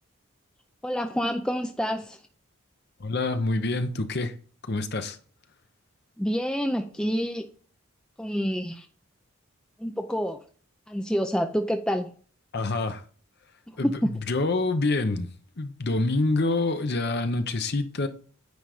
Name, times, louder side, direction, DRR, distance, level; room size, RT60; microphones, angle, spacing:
voice 1, 0.8-2.2 6.2-7.5 8.2-8.9 9.8-10.4 10.9-12.1 13.8-14.1, equal, 5° left, 0.4 m, -27 dB
voice 2, 3.0-4.3 4.6-5.2 12.5-13.0 13.8-15.3 15.6-18.1, left 2 dB, 50° left, 0.8 m, -26 dB
9.5 x 4.0 x 4.9 m
head